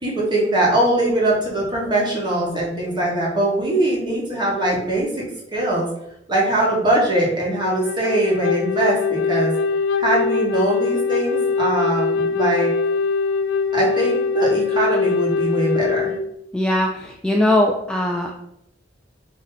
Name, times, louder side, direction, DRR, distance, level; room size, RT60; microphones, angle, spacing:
voice 1, 0.0-5.2 5.5-5.9 6.3-9.5 10.0-12.7 13.7-16.1, right 1 dB, 25° right, -5 dB, 1.5 m, -21 dB
Wind instrument woodwind instrument, 7.6-16.2, left 5 dB, 85° left, 0.4 m, -22 dB
voice 2, 16.5-18.3, left 1 dB, 5° left, 0 dB, 0.3 m, -20 dB
4.1 x 3.1 x 3.9 m, 0.78 s
head